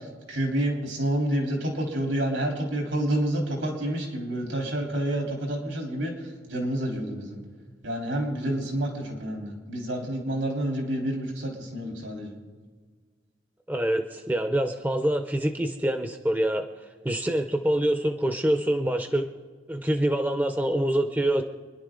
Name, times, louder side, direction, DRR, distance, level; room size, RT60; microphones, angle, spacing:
voice 1, 0.0-7.4 7.8-12.4, right 1 dB, 80° right, 0 dB, 3.6 m, -29 dB
voice 2, 13.7-16.6 17.0-19.3 19.7-21.4, right 1 dB, 10° right, 7 dB, 0.6 m, -25 dB
27.5 x 11.0 x 3.8 m, 1.6 s
head